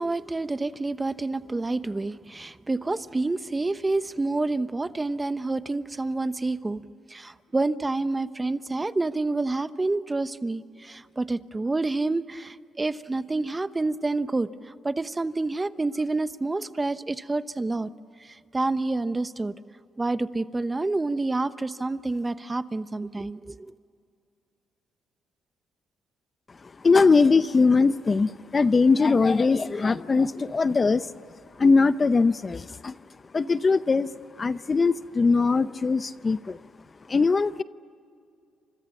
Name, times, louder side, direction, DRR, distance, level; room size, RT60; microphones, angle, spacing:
voice 1, 0.0-6.8 7.1-17.9 18.2-19.6 20.0-23.7, right 2 dB, 20° right, 13 dB, 0.9 m, -28 dB
voice 2, 26.8-31.1 31.6-32.9 33.3-34.1 34.4-36.6 37.1-37.6, left 4 dB, 30° left, 14 dB, 0.7 m, -21 dB
30.0 x 27.0 x 7.3 m, 2.4 s
cardioid pair, 90°, 0 cm